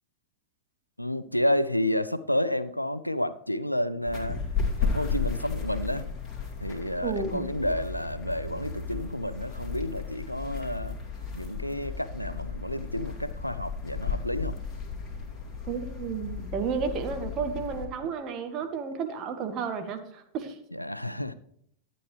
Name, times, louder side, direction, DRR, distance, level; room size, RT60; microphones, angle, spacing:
voice 1, 1.0-4.4 4.8-6.1 6.6-11.0 11.3-14.6 20.7-21.3, left 1 dB, 90° left, 14 dB, 0.5 m, -30 dB
sound 1, 4.1-17.8, left 5 dB, 20° left, 2.3 m, -34 dB
voice 2, 7.0-7.5 15.7-20.6, right 5 dB, 35° right, 6 dB, 1.3 m, -32 dB
11.5 x 9.4 x 3.2 m, 0.70 s
figure-of-eight pair, 90°, 0 cm